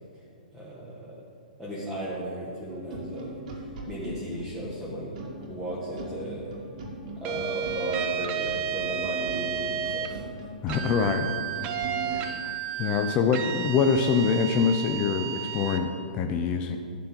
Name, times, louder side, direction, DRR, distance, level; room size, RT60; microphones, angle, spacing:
voice 1, 0.5-1.2 1.6-5.2 5.5-6.5 7.2-10.3 12.0-12.2, right 1 dB, 5° right, -9 dB, 1.9 m, -36 dB
sound 1, 2.7-12.3, right 2 dB, 60° right, 2.4 m, -40 dB
sound 2, 7.2-10.1 10.7-15.8, right 8 dB, 30° right, 0.8 m, -32 dB
voice 2, 10.6-11.3 12.1-12.5 12.8-15.9 16.1-16.8, left 5 dB, 30° left, 5 dB, 0.6 m, -25 dB
11.5 x 4.4 x 7.8 m, 2.3 s
hypercardioid pair, 130°, 5 cm